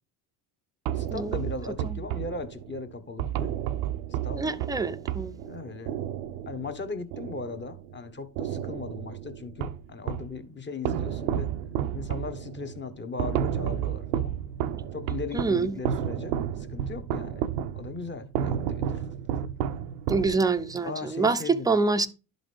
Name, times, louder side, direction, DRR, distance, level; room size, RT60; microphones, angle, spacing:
voice 1, 0.9-3.6 3.9-4.6 5.4-6.0 6.5-11.5 11.9-14.4 14.9-17.5 17.7-19.1 20.8-21.8, left 4 dB, 25° left, 1.0 m, -38 dB
sound 1, 0.9-8.0 8.4-10.4 10.8-20.8, right 10 dB, 80° right, 0.7 m, -32 dB
voice 2, 4.3-5.3 15.3-15.7 20.1-22.1, right 4 dB, 10° right, 0.5 m, -26 dB
11.5 x 3.9 x 3.3 m
hypercardioid pair, 75°, 48 cm